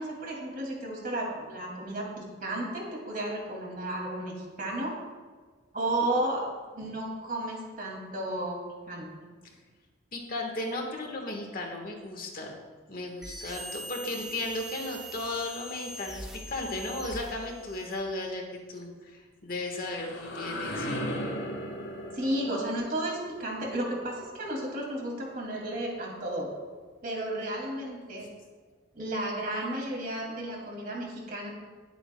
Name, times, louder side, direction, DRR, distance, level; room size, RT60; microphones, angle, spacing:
voice 1, 0.0-5.0 5.7-6.4 6.7-9.1 22.1-26.5 27.0-28.3 29.0-31.5, right 1 dB, 45° right, -1 dB, 2.4 m, -33 dB
voice 2, 10.1-12.5 12.9-21.0, left 2 dB, 45° left, 1 dB, 1.4 m, -35 dB
sound 1, 13.2-18.1, right 1 dB, 5° right, 0.7 m, -42 dB
sound 2, 19.5-25.3, equal, 65° left, 3.4 m, -38 dB
19.5 x 8.1 x 2.2 m, 1.5 s
head